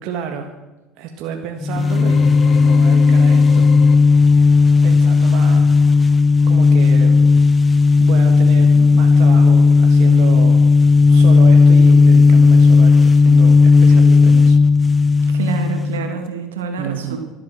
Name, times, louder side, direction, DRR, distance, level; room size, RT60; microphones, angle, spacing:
voice 1, 0.0-0.5 1.0-3.6 4.8-6.1 6.5-7.3 8.0-10.6 11.1-14.6 16.8-17.2, right 7 dB, 65° right, 3 dB, 1.7 m, -30 dB
sound 1, 1.6-16.2, left 4 dB, 25° left, 0.4 m, -12 dB
sound 2, 1.8-4.4, left 8 dB, 55° left, 1.2 m, -29 dB
voice 2, 15.3-17.2, right 6 dB, 85° right, 5 dB, 2.4 m, -27 dB
25.0 x 8.6 x 6.2 m, 1.1 s
hypercardioid pair, 65°, 0 cm